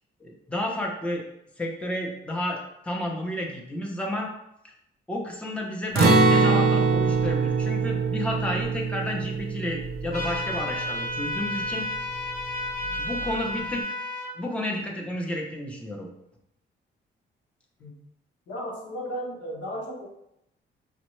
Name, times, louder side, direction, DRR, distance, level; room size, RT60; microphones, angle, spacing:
voice 1, 0.2-1.2 1.6-4.3 5.1-11.8 12.9-13.8 14.4-16.1, left 1 dB, 5° left, 0 dB, 0.6 m, -31 dB
Acoustic guitar, 6.0-11.9 12.2-12.3 12.8-13.3, right 3 dB, 50° right, 0.6 m, -24 dB
sound 1, 10.1-14.3, left 1 dB, 50° left, 0.8 m, -32 dB
voice 2, 18.5-20.1, equal, 70° left, -1 dB, 1.0 m, -34 dB
5.3 x 2.0 x 3.1 m, 0.79 s
cardioid pair, 90°, 20 cm